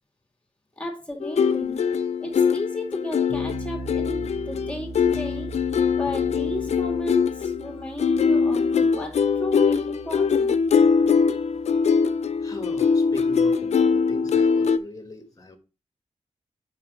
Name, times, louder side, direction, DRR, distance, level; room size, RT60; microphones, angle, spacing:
voice 1, 0.8-1.8 2.2-5.5 5.9-10.6, left 1 dB, 10° left, 2.1 m, -34 dB
sound 1, 1.2-14.8, left 6 dB, 75° left, 0.5 m, -22 dB
sound 2, 3.3-14.5, right 5 dB, 80° right, 0.9 m, -41 dB
voice 2, 12.1-15.6, left 2 dB, 30° left, 1.4 m, -40 dB
5.9 x 5.2 x 6.1 m
wide cardioid pair, 145°, 11 cm